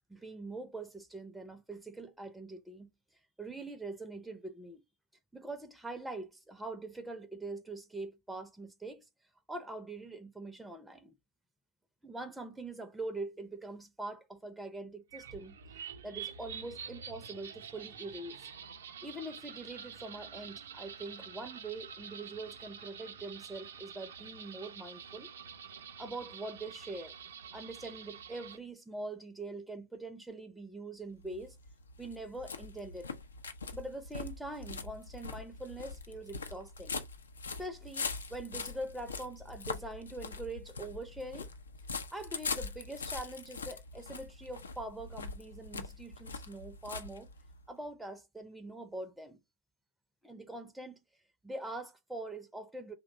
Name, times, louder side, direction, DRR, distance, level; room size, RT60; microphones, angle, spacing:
voice 1, 0.1-2.9 3.4-4.8 5.3-9.1 9.5-11.1 12.0-15.6 16.0-18.4 19.0-25.3 26.0-27.1 27.5-31.6 32.0-33.1 33.7-37.0 37.6-41.5 42.1-47.3 47.7-49.4 50.2-51.0 51.4-52.9, right 2 dB, 5° right, 0.4 m, -43 dB
sound 1, 15.1-28.6, right 7 dB, 70° right, 0.4 m, -47 dB
sound 2, 31.1-47.7, left 4 dB, 80° left, 0.4 m, -42 dB
2.9 x 2.0 x 3.6 m
figure-of-eight pair, 95°, 0 cm